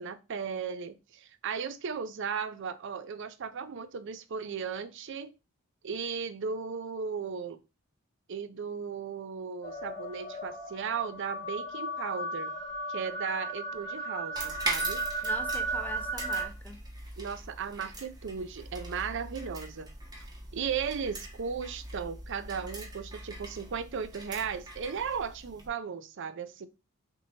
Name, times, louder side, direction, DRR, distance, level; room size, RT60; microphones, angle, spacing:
voice 1, 0.0-5.3 5.8-7.6 8.3-12.5 12.9-15.0 17.2-19.9 20.5-26.7, right 6 dB, 60° right, 0.5 m, -36 dB
sound 1, 9.6-16.5, right 2 dB, 40° left, 1.6 m, -35 dB
sound 2, 14.4-25.7, right 2 dB, 20° right, 1.0 m, -41 dB
voice 2, 15.2-16.8, left 2 dB, 10° left, 0.4 m, -42 dB
6.0 x 2.8 x 2.8 m
head